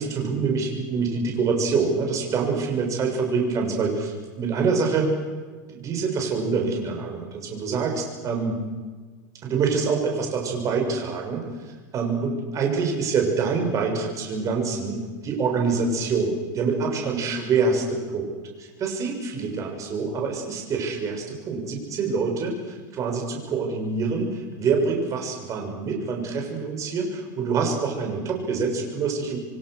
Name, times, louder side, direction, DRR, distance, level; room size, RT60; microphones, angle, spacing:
voice 1, 0.0-5.1 5.7-8.6 9.4-11.4 11.9-29.4, right 4 dB, 30° right, 2 dB, 7.2 m, -26 dB
28.0 x 23.5 x 6.8 m, 1.4 s
supercardioid pair, 135°, 10 cm